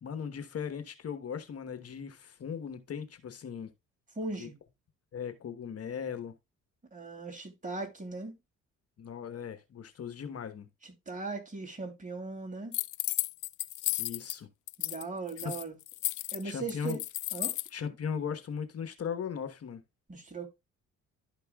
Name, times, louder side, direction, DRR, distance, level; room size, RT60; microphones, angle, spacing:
voice 1, 0.0-3.7 4.4-4.5 5.1-6.3 9.0-10.7 14.0-14.5 15.4-15.5 16.4-17.0 17.7-19.8, left 7 dB, 50° left, 1.1 m, -38 dB
voice 2, 4.1-4.5 6.9-8.3 10.8-12.7 14.8-15.8 16.3-17.0 17.3-17.6 20.1-20.5, right 3 dB, 25° right, 3.0 m, -38 dB
sound 1, 12.7-14.4 14.7-15.0 15.3-17.7, left 18 dB, 85° left, 0.5 m, -33 dB
12.0 x 5.3 x 2.3 m
cardioid pair, 90°, 30 cm